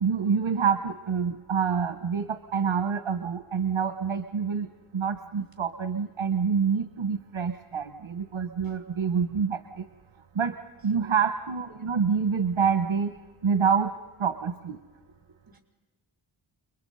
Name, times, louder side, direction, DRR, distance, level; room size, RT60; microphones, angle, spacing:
voice 1, 0.0-4.7 4.9-9.9 10.3-13.1 13.4-13.9 14.2-14.8, right 6 dB, 75° right, 9 dB, 1.0 m, -27 dB
voice 2, 15.3-15.6, right 4 dB, 45° right, 3 dB, 4.5 m, -54 dB
29.5 x 23.0 x 5.5 m, 1.4 s
wide cardioid pair, 50°, 48 cm